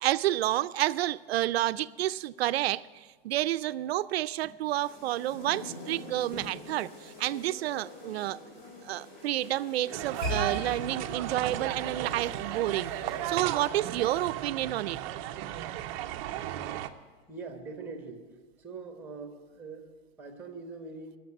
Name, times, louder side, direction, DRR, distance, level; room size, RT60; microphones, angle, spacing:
voice 1, 0.0-8.4 8.9-12.9 13.2-15.0, right 14 dB, 90° right, 0.5 m, -30 dB
voice 2, 4.4-5.1 6.3-6.8 17.3-18.2 18.6-21.2, right 4 dB, 5° right, 1.2 m, -43 dB
sound 1, 4.7-13.3, left 1 dB, 30° left, 3.5 m, -46 dB
sound 2, 9.9-16.9, right 12 dB, 35° right, 0.5 m, -35 dB
Bowed string instrument, 10.2-16.6, left 3 dB, 55° left, 2.0 m, -43 dB
12.0 x 6.7 x 9.7 m
supercardioid pair, 160°, 30 cm